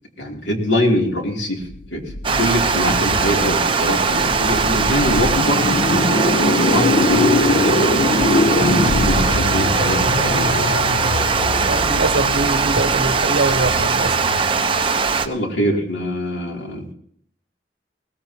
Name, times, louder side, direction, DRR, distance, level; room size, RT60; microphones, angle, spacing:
voice 1, 0.2-1.6 1.9-2.0 2.3-5.7 6.4-7.9 8.5-10.7 15.2-16.9, left 1 dB, 80° left, 0 dB, 3.1 m, -23 dB
sound 1, 1.6-14.8, left 2 dB, 50° left, 0.7 m, -23 dB
Water, 2.2-15.3, right 5 dB, 30° right, 0.8 m, -20 dB
voice 2, 11.6-14.3, right 2 dB, 75° right, 8 dB, 1.2 m, -23 dB
20.5 x 17.5 x 2.9 m, 0.64 s
head